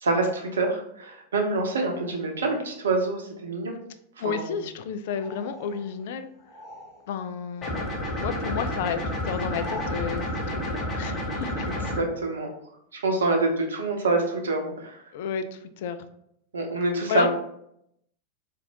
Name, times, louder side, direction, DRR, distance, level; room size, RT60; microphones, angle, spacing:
voice 1, 0.0-3.7 4.2-4.5 11.6-12.5 12.9-15.0 16.5-17.3, right 3 dB, 65° right, 2 dB, 0.8 m, -26 dB
voice 2, 4.2-6.3 7.1-7.9 8.2-11.9 15.1-16.0 17.1-17.3, left 7 dB, 55° left, 10 dB, 0.3 m, -32 dB
sound 1, 5.1-7.3 7.6-10.0, equal, 25° right, 1.5 m, -45 dB
sound 2, 7.6-12.0, left 1 dB, 25° left, 0.9 m, -30 dB
4.0 x 2.5 x 2.9 m, 0.74 s
figure-of-eight pair, 90°, 0 cm